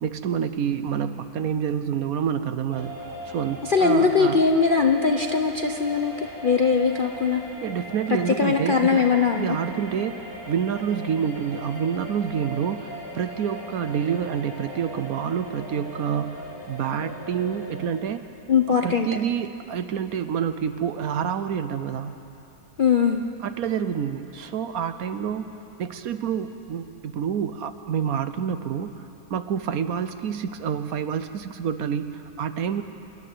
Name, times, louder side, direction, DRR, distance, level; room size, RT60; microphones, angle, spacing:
voice 1, 0.0-4.4 7.6-9.0 9.4-18.2 18.8-22.2 23.4-25.5 25.8-28.9 29.3-32.8, right 8 dB, 65° right, 10 dB, 1.1 m, -28 dB
sound 1, 2.7-17.9, equal, 15° left, 3.8 m, -39 dB
voice 2, 3.7-7.4 8.4-9.6 18.5-19.1 22.8-23.2, left 5 dB, 50° left, 4 dB, 0.6 m, -21 dB
27.5 x 11.5 x 9.2 m, 3.0 s
omnidirectional pair, 1.8 m